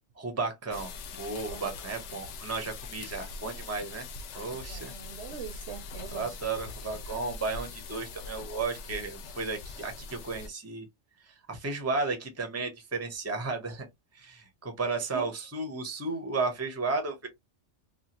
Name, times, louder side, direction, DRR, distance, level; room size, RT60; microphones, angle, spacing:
voice 1, 0.2-0.9 1.2-4.1 4.3-4.9 6.1-10.9 11.2-13.9 14.1-17.3, right 3 dB, 15° right, 0.6 m, -33 dB
sound 1, 0.7-10.5, left 4 dB, 85° left, 0.9 m, -42 dB
voice 2, 4.7-6.4 15.1-15.3, right 8 dB, 70° right, 0.9 m, -42 dB
2.9 x 2.4 x 2.9 m
omnidirectional pair, 1.2 m